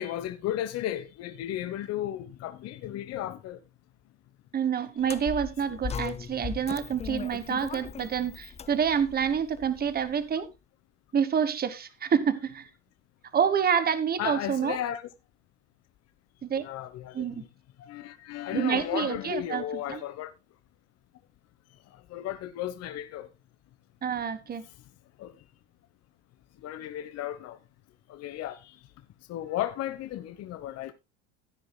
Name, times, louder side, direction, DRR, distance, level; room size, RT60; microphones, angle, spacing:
voice 1, 0.0-3.6 5.7-5.8 14.2-15.0 16.6-17.3 17.8-20.3 22.1-23.3 25.2-25.3 26.6-27.6 28.1-28.7 29.3-30.9, left 12 dB, 45° left, 1.1 m, -34 dB
voice 2, 4.5-10.5 11.1-12.7 13.3-14.8 16.4-16.6 17.1-17.4 18.5-20.0 24.0-24.6, right 7 dB, 25° right, 1.4 m, -28 dB
sound 1, 5.0-10.2, left 6 dB, 20° left, 0.5 m, -38 dB
16.0 x 9.4 x 2.3 m
hypercardioid pair, 90°, 35 cm